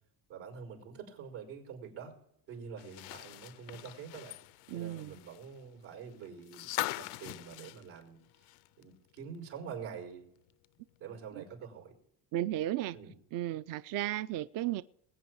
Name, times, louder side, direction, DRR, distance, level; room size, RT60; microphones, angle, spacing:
voice 1, 0.3-2.1 2.5-4.4 4.7-6.7 6.9-8.5 8.8-10.3 11.0-11.9 12.9-13.1, right 6 dB, 80° right, 5.0 m, -46 dB
sound 1, 2.8-8.8 9.2-9.3 10.6-10.7, left 19 dB, 90° left, 0.6 m, -42 dB
voice 2, 4.7-5.1 11.3-11.4 12.3-13.0 13.3-14.8, right 13 dB, 45° right, 0.4 m, -34 dB
20.5 x 8.8 x 4.7 m
cardioid pair, 110°, 49 cm